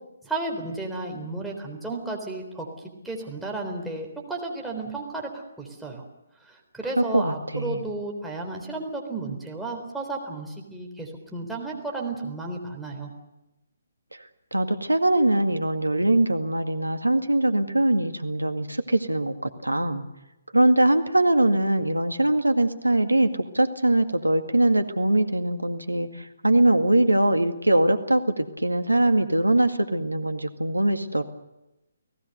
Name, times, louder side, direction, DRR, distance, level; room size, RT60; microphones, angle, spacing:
voice 1, 0.2-6.0 6.4-13.1, right 2 dB, ahead, -1 dB, 3.8 m, -33 dB
voice 2, 7.0-7.8 14.1-14.2 14.5-20.0 20.5-31.2, right 1 dB, 85° right, 7 dB, 2.0 m, -22 dB
30.0 x 18.0 x 6.7 m, 0.95 s
figure-of-eight pair, 135°, 0 cm